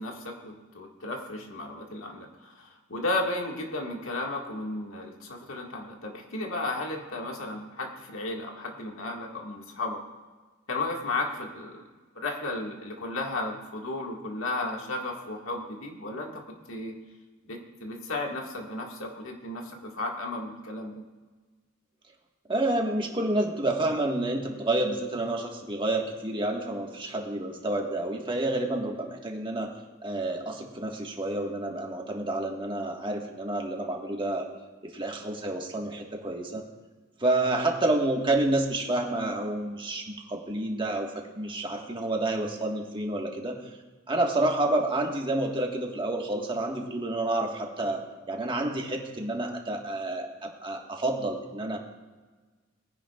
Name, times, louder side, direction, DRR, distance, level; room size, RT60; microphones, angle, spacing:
voice 1, 0.0-10.0 10.7-11.8 12.2-16.4 16.7-17.0 17.4-20.9, left 2 dB, 90° left, 1 dB, 1.8 m, -34 dB
voice 2, 22.5-29.7 30.0-34.5 34.8-36.6 37.2-43.6 44.1-51.8, right 2 dB, 25° right, 1 dB, 1.5 m, -29 dB
21.0 x 10.5 x 2.4 m, 1.3 s
head